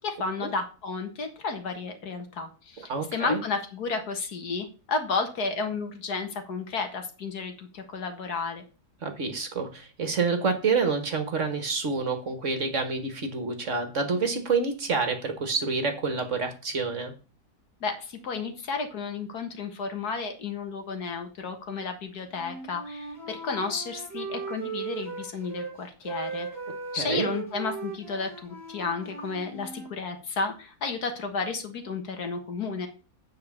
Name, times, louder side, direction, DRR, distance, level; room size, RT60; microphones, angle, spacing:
voice 1, 0.0-8.6 17.8-26.5 26.9-32.9, left 4 dB, 70° left, 6 dB, 2.0 m, -32 dB
voice 2, 2.9-3.4 9.0-17.1 26.9-27.3, right 4 dB, 50° right, 7 dB, 1.7 m, -28 dB
Wind instrument woodwind instrument, 22.3-25.7 26.0-29.9, right 5 dB, 10° right, 2.4 m, -38 dB
8.6 x 4.7 x 7.2 m, 0.35 s
omnidirectional pair, 1.8 m